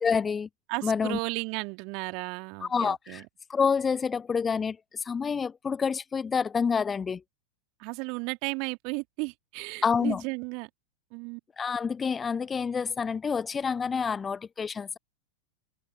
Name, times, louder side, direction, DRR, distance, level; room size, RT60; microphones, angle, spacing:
voice 1, 0.0-0.5 0.8-1.2 2.6-3.2 3.5-7.2 9.8-10.2 11.6-15.0, left 6 dB, 15° left, 0.4 m, -28 dB
voice 2, 0.7-3.2 7.8-10.7 11.1-11.4, right 31 dB, 45° right, 2.3 m, -34 dB
open air
figure-of-eight pair, 90°, 0 cm